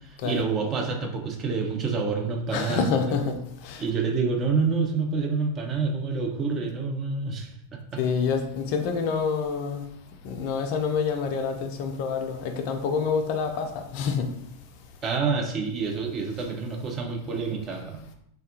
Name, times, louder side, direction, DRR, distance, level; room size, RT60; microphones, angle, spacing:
voice 1, 0.2-2.8 3.8-7.5 7.9-8.0 15.0-18.0, right 4 dB, 25° right, 0.5 m, -27 dB
voice 2, 2.5-3.9 8.0-9.8 10.2-14.3, left 5 dB, 45° left, 0.4 m, -27 dB
3.4 x 2.2 x 2.7 m
figure-of-eight pair, 90°, 0 cm